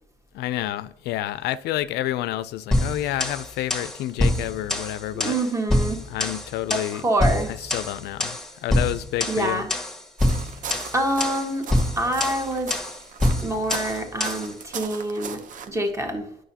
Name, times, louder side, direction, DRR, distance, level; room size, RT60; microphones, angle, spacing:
voice 1, 0.3-5.4 6.1-7.1 7.6-9.7, left 14 dB, 80° left, 0.4 m, -29 dB
sound 1, 2.7-14.5, left 1 dB, 5° left, 1.5 m, -26 dB
voice 2, 5.1-6.1 6.7-7.5 9.3-9.7 10.9-11.7 12.0-12.7 13.4-16.3, right 1 dB, 15° right, 1.4 m, -26 dB
sound 2, 10.2-15.7, right 6 dB, 50° right, 0.8 m, -38 dB
9.0 x 6.4 x 2.8 m
cardioid pair, 110°, 17 cm